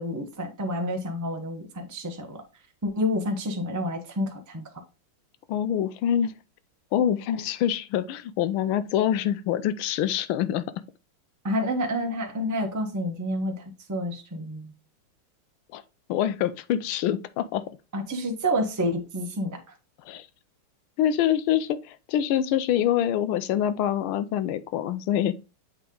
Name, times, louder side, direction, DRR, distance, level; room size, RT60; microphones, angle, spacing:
voice 1, 0.0-2.4 2.8-4.7 11.4-14.7 17.9-19.6, equal, 25° right, 0.3 m, -29 dB
voice 2, 5.5-6.3 6.9-10.6 15.7-15.8 16.1-17.7 20.0-20.3 21.0-25.3, left 10 dB, 85° left, 1.4 m, -25 dB
8.0 x 3.4 x 3.8 m
omnidirectional pair, 2.3 m